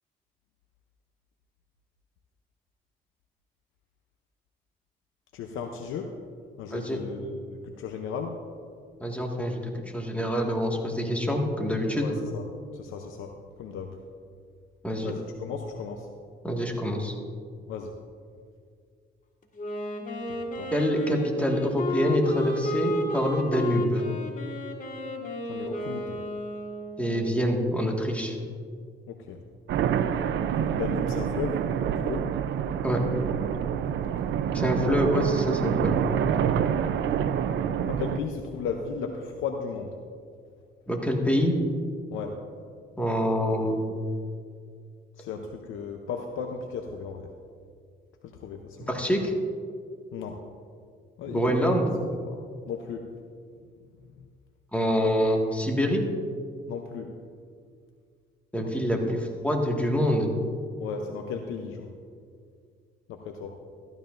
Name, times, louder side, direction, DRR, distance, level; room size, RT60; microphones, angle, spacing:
voice 1, 5.3-6.1 6.6-8.4 11.9-12.4 12.7-14.0 15.0-16.1 17.7-17.9 20.3-20.7 25.4-26.2 29.1-29.4 30.4-31.6 31.9-32.3 34.0-34.4 34.6-34.9 37.9-39.9 42.1-42.4 45.2-47.3 48.2-48.9 50.1-50.4 51.2-51.8 52.3-52.4 52.7-53.1 56.7-57.1 58.6-58.7 60.8-61.9 63.1-63.6, left 6 dB, 90° left, 3 dB, 0.7 m, -35 dB
voice 2, 9.0-12.1 14.8-15.1 16.4-17.1 20.7-24.1 27.0-28.4 32.8-33.0 34.5-36.0 40.9-41.6 43.0-43.9 48.9-49.3 51.3-51.9 54.7-56.0 58.5-60.3, equal, 5° left, 0 dB, 1.8 m, -26 dB
Wind instrument woodwind instrument, 19.6-27.3, left 1 dB, 40° left, 1.7 m, -33 dB
sound 1, 29.7-38.2, right 8 dB, 70° right, 0.5 m, -27 dB
14.5 x 12.5 x 2.6 m, 2.2 s
cardioid pair, 90°, 20 cm